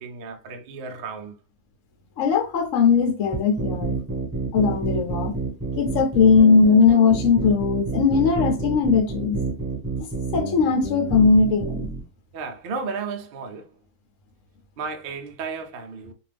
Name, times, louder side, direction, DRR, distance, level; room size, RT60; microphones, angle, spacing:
voice 1, 0.0-1.3 12.3-13.7 14.8-16.1, right 4 dB, 75° right, 0.5 m, -33 dB
voice 2, 2.2-3.9 4.5-5.3 5.8-9.4 10.3-11.8, left 5 dB, 65° left, 0.9 m, -19 dB
sound 1, 3.3-12.0, right 4 dB, 10° right, 1.2 m, -29 dB
2.6 x 2.3 x 3.3 m
omnidirectional pair, 1.6 m